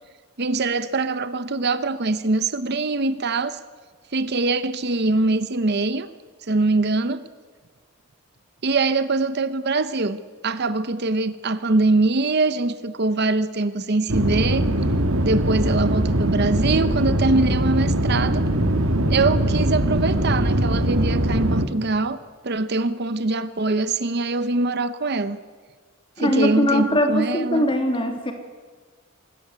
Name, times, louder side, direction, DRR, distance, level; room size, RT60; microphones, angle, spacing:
voice 1, 0.4-3.6 4.1-6.1 6.5-7.2 8.6-14.7 15.2-18.4 19.1-22.2 22.4-25.4 26.2-27.6, right 3 dB, 50° right, 13 dB, 0.8 m, -23 dB
sound 1, 14.1-21.7, right 1 dB, 85° right, 1.9 m, -21 dB
voice 2, 26.2-28.3, equal, 25° left, 5 dB, 2.8 m, -21 dB
24.5 x 14.0 x 9.5 m, 1.5 s
head